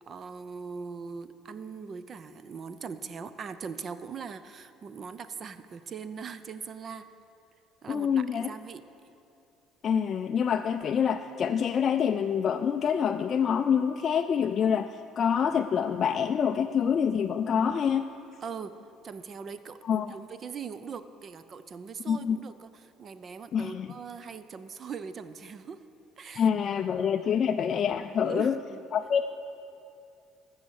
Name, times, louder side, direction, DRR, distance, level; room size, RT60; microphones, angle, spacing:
voice 1, 0.0-7.1 7.8-8.8 18.4-25.8 26.2-26.5 28.2-28.8, right 5 dB, 35° right, 12 dB, 0.5 m, -41 dB
voice 2, 7.9-8.5 9.8-18.1 19.9-20.2 22.1-22.4 23.5-23.9 26.4-28.6 28.9-29.2, left 7 dB, 40° left, 6 dB, 0.3 m, -26 dB
14.5 x 6.3 x 6.4 m, 2.6 s
cardioid pair, 130°, 0 cm